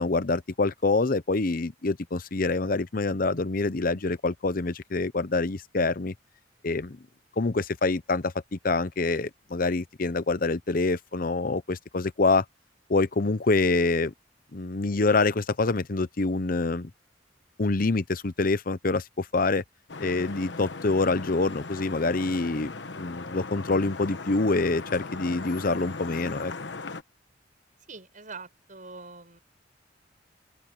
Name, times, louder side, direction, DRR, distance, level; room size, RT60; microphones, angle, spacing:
voice 1, 0.0-6.1 6.6-7.0 7.4-12.4 12.9-14.1 14.5-16.9 17.6-19.6 20.0-26.5, left 3 dB, 50° left, 0.8 m, -26 dB
Vehicle horn car horn honking / Traffic noise roadway noise, 19.9-27.0, left 3 dB, 70° left, 1.1 m, -38 dB
voice 2, 27.9-29.4, right 4 dB, 45° right, 7.7 m, -43 dB
open air
head